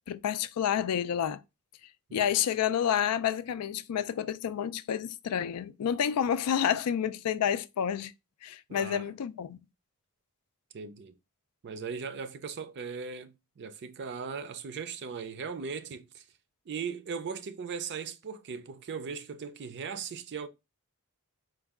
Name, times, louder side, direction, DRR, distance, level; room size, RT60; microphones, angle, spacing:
voice 1, 0.1-1.4 2.1-8.1 8.4-9.6, left 9 dB, 90° left, 0.4 m, -29 dB
voice 2, 8.7-9.1 10.7-11.1 11.6-16.2 16.7-20.5, right 6 dB, 50° right, 0.5 m, -38 dB
4.5 x 2.3 x 3.5 m
head